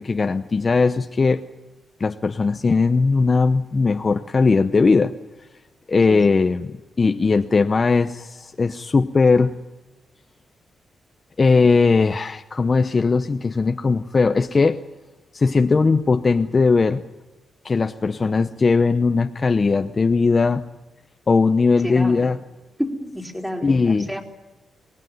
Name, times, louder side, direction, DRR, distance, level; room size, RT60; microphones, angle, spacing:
voice 1, 0.0-1.4 2.0-5.2 5.9-9.6 11.4-14.8 15.3-17.0 17.6-20.6 21.3-22.4 23.6-24.1, left 4 dB, 30° left, 0.8 m, -19 dB
voice 2, 21.8-22.3 22.8-24.2, equal, 5° right, 3.7 m, -30 dB
25.0 x 19.5 x 9.3 m
cardioid pair, 105°, 0 cm